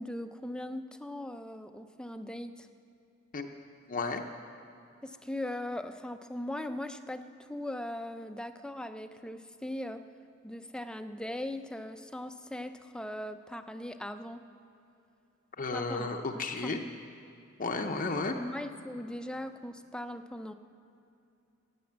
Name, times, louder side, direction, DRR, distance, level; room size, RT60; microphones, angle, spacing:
voice 1, 0.0-2.7 5.0-10.0 10.4-14.4 15.7-16.1 16.6-16.8 18.3-20.5, left 1 dB, 5° left, 9 dB, 0.5 m, -39 dB
voice 2, 3.9-4.2 15.6-16.8 17.6-18.3, left 3 dB, 40° left, 3 dB, 0.7 m, -33 dB
16.0 x 9.6 x 7.4 m, 2.7 s
head